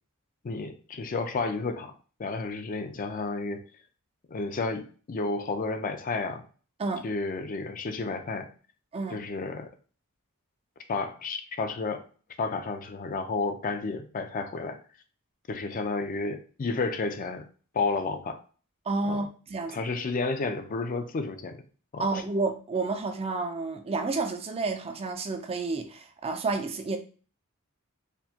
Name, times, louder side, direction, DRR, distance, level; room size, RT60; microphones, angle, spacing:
voice 1, 0.4-1.9 2.2-3.6 4.3-6.4 7.0-8.5 9.1-9.7 10.9-12.1 12.4-14.8 15.5-17.5 17.7-18.4 19.1-19.2 19.7-21.6 21.9-22.0, left 3 dB, 40° left, 0.4 m, -31 dB
voice 2, 8.9-9.3 18.9-19.8 22.0-27.0, right 3 dB, 25° right, 0.4 m, -30 dB
4.3 x 2.2 x 2.8 m
head